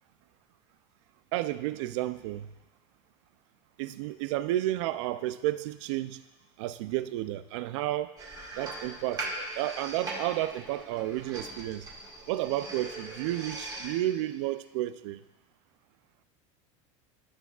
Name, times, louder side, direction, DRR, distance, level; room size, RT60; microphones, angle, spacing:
voice 1, 1.3-2.5 3.8-6.2 6.6-8.2 8.6-11.9 12.3-15.2, right 14 dB, 70° right, 14 dB, 0.4 m, -32 dB
sound 1, 8.2-13.9, right 2 dB, 25° right, 1.7 m, -40 dB
13.0 x 6.0 x 2.3 m, 1.1 s
supercardioid pair, 135°, 16 cm